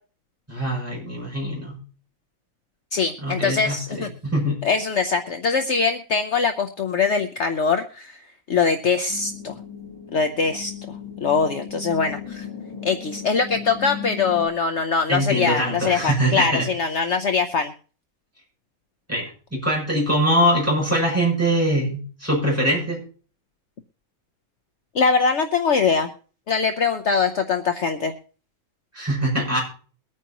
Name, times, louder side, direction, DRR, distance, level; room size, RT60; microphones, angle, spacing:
voice 1, 0.5-1.8 3.2-4.6 15.1-16.7 19.1-23.0 28.9-29.6, equal, 10° right, -4 dB, 7.2 m, -23 dB
voice 2, 2.9-4.1 4.6-8.2 8.5-9.5 10.1-12.5 12.8-17.7 24.9-26.1 26.5-28.1, left 5 dB, 55° left, 6 dB, 1.1 m, -22 dB
sound 1, 9.1-14.5, left 7 dB, 15° left, 1.5 m, -36 dB
23.0 x 9.3 x 3.0 m, 0.40 s
omnidirectional pair, 1.5 m